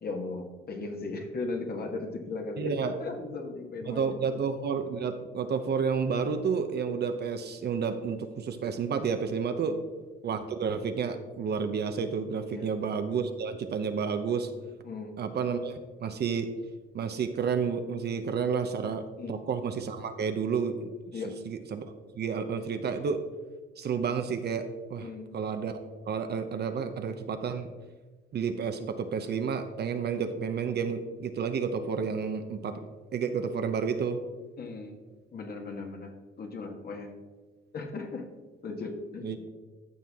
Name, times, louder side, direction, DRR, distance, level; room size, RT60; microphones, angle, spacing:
voice 1, 0.0-4.3 9.6-9.8 12.5-12.7 14.8-15.2 19.2-19.3 21.1-21.3 25.0-25.3 34.6-35.0 35.3-37.1 37.7-38.3 38.6-39.5, left 3 dB, 50° left, 4 dB, 1.5 m, -37 dB
voice 2, 2.6-2.9 3.9-9.8 10.2-14.5 15.2-16.5 16.9-20.9 21.5-21.8 22.1-23.2 23.8-25.1 25.3-25.8 26.1-27.7 28.3-32.8 33.1-34.2 39.2-39.4, right 6 dB, 55° right, 7 dB, 0.8 m, -30 dB
14.0 x 5.8 x 3.6 m, 1.3 s
cardioid pair, 90°, 20 cm